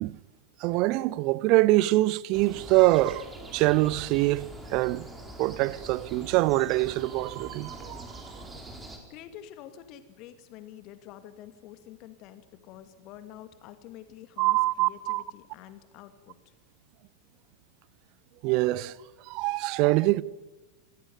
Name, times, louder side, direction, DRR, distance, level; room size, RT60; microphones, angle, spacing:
voice 1, 0.6-5.1 5.4-8.1 8.3-8.4 14.4-15.2 18.4-19.0 19.2-20.2, right 19 dB, 40° right, 0.7 m, -24 dB
sound 1, 2.3-9.0, right 1 dB, 15° right, 4.5 m, -44 dB
voice 2, 9.1-16.5, left 11 dB, 40° left, 2.2 m, -48 dB
27.0 x 15.5 x 9.6 m
figure-of-eight pair, 90°, 0 cm